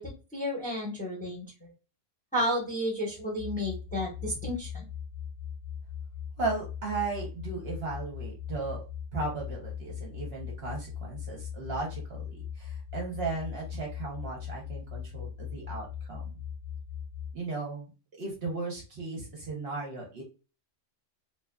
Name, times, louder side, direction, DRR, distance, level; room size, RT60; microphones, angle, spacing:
voice 1, 0.0-1.7 2.3-4.8, equal, 5° left, -2 dB, 0.8 m, -32 dB
sound 1, 3.4-17.4, left 8 dB, 65° left, 0.7 m, -40 dB
voice 2, 6.4-8.8 9.1-16.3 17.3-17.9 18.2-20.2, right 3 dB, 55° right, -1 dB, 0.9 m, -36 dB
2.8 x 2.3 x 2.2 m, 0.32 s
omnidirectional pair, 1.4 m